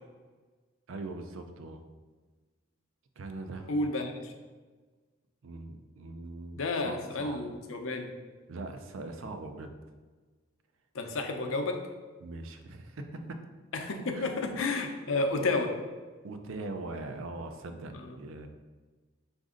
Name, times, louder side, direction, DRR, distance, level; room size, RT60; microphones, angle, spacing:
voice 1, 0.9-1.8 3.2-3.7 5.4-7.5 8.5-9.7 12.2-13.4 14.1-14.3 16.2-18.5, right 2 dB, 75° right, 6 dB, 0.4 m, -41 dB
voice 2, 3.7-4.3 6.6-8.1 10.9-11.8 13.7-15.7 17.9-18.1, left 3 dB, 75° left, 4 dB, 0.6 m, -31 dB
5.0 x 2.6 x 3.7 m, 1.4 s
head